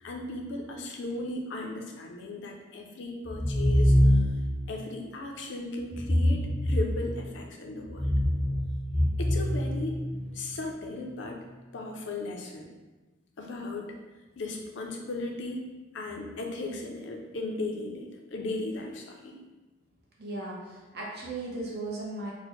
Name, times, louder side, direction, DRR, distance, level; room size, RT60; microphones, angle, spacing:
voice 1, 0.0-4.3 4.7-8.1 9.2-10.0 10.3-11.4 11.7-12.7 13.4-13.9 14.4-15.7 15.9-19.4, left 2 dB, 65° left, 1 dB, 0.5 m, -36 dB
sound 1, 3.3-4.5 5.9-7.3 7.8-10.4, equal, ahead, 0.5 m, -25 dB
voice 2, 20.2-22.3, right 2 dB, 50° right, -4 dB, 0.8 m, -36 dB
4.0 x 2.1 x 3.0 m, 1.2 s
head